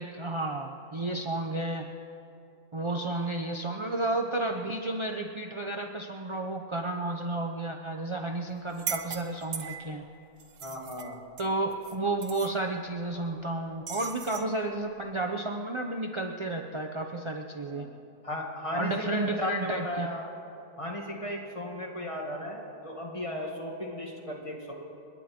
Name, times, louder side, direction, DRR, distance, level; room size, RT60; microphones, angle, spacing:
voice 1, 0.0-1.9 2.7-10.0 11.4-17.9 18.8-20.1, right 2 dB, 40° right, 2 dB, 0.4 m, -32 dB
sound 1, 8.7-10.0 10.4-12.0 12.2-12.5 13.9-14.5, right 7 dB, 75° right, 1.5 m, -39 dB
voice 2, 10.6-11.2 17.7-17.9 18.2-20.3 20.8-24.7, left 1 dB, 20° left, -1 dB, 2.0 m, -35 dB
30.0 x 10.0 x 4.3 m, 2.6 s
omnidirectional pair, 1.6 m